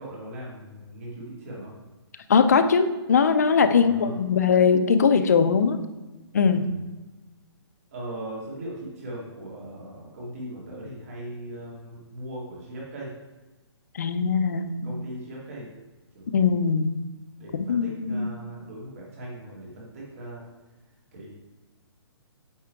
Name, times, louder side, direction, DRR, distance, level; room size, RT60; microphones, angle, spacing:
voice 1, 0.0-1.7 3.7-4.1 6.5-6.8 7.9-13.1 14.8-15.7 16.1-16.5 17.4-20.5 21.1-21.3, right 1 dB, 30° right, -4 dB, 2.3 m, -39 dB
voice 2, 2.3-5.8 6.3-6.7 13.9-14.9 16.3-17.0 17.7-18.3, left 6 dB, 35° left, 10 dB, 0.4 m, -21 dB
8.8 x 3.7 x 4.5 m, 1.1 s
hypercardioid pair, 175°, 15 cm